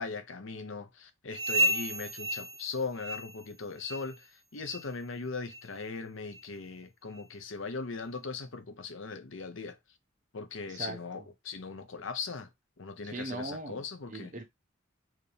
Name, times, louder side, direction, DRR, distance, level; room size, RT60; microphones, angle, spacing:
voice 1, 0.0-9.8 10.3-12.5 12.8-14.3, left 4 dB, 75° left, 0.8 m, -39 dB
sound 1, 1.3-3.5 3.8-4.2 4.6-4.9 5.5-5.6 6.3-6.4 7.2-7.3, right 1 dB, 65° right, 1.3 m, -32 dB
voice 2, 10.7-11.2 13.0-13.8 14.1-14.4, right 2 dB, 40° right, 1.0 m, -39 dB
4.7 x 3.0 x 3.3 m
head